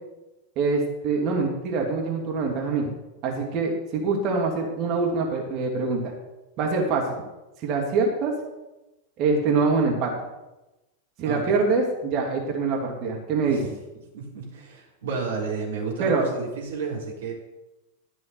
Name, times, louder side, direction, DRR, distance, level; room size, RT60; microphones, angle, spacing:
voice 1, 0.6-2.9 3.2-6.1 6.6-7.1 7.6-8.3 9.2-10.1 11.2-13.7 16.0-16.3, right 4 dB, 40° right, 0 dB, 2.4 m, -24 dB
voice 2, 11.2-11.6 13.5-13.6 14.1-17.3, right 5 dB, 60° right, -2 dB, 3.8 m, -32 dB
13.0 x 6.3 x 6.8 m, 1.0 s
figure-of-eight pair, 90°, 0 cm